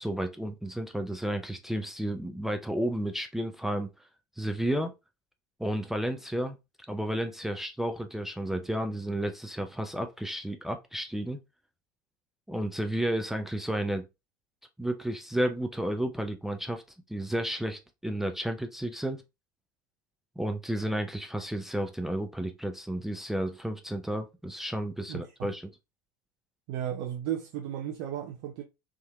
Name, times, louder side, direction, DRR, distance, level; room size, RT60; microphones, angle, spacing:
voice 1, 0.0-3.9 4.4-4.9 5.6-6.6 6.9-11.4 12.5-14.0 14.8-16.8 17.1-19.2 20.4-25.7, right 1 dB, 5° right, 0.4 m, -32 dB
voice 2, 25.1-25.5 26.7-28.6, right 10 dB, 50° right, 0.5 m, -34 dB
3.5 x 2.6 x 2.2 m
figure-of-eight pair, 70°, 11 cm